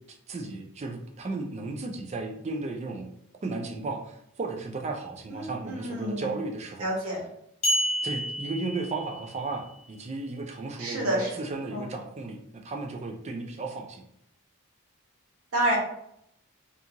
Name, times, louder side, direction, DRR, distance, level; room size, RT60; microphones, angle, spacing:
voice 1, 0.1-3.1 3.4-6.9 8.0-14.0, right 3 dB, 30° right, 3 dB, 0.4 m, -34 dB
voice 2, 5.3-6.4 6.8-7.2 10.8-11.3 11.7-11.9 15.5-15.8, right 1 dB, 75° right, -2 dB, 1.0 m, -29 dB
sound 1, 7.6-9.5, equal, 30° left, 1.0 m, -29 dB
2.7 x 2.5 x 2.7 m, 0.73 s
head